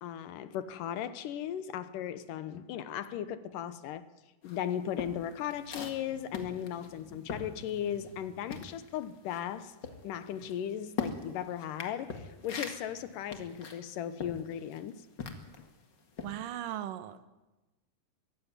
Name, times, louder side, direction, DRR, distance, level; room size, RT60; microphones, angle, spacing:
voice 1, 0.0-4.1 4.4-9.7 10.0-15.0 15.6-15.7, left 10 dB, 75° left, 2.6 m, -37 dB
sound 1, 4.4-8.2 8.5-15.7 16.1-16.4, left 5 dB, 40° left, 2.1 m, -41 dB
sound 2, 5.2-10.7 11.3-13.1, equal, 20° right, 2.3 m, -57 dB
voice 2, 16.2-17.3, right 11 dB, 80° right, 2.8 m, -38 dB
23.0 x 15.5 x 9.6 m
omnidirectional pair, 3.8 m